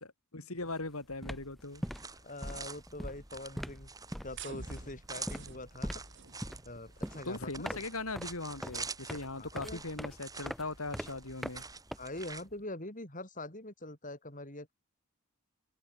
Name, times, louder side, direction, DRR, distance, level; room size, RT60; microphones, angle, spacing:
voice 1, 0.0-1.8 7.3-11.6, left 2 dB, 75° left, 3.7 m, -40 dB
sound 1, 0.6-0.8 1.1-12.5, equal, ahead, 0.9 m, -43 dB
sound 2, 1.6-12.5, right 4 dB, 15° right, 6.6 m, -47 dB
voice 2, 2.2-3.9 4.2-6.0 6.6-7.8 9.4-9.8 12.0-14.7, left 2 dB, 35° left, 6.0 m, -44 dB
sound 3, 4.3-10.4, right 5 dB, 55° right, 1.9 m, -52 dB
head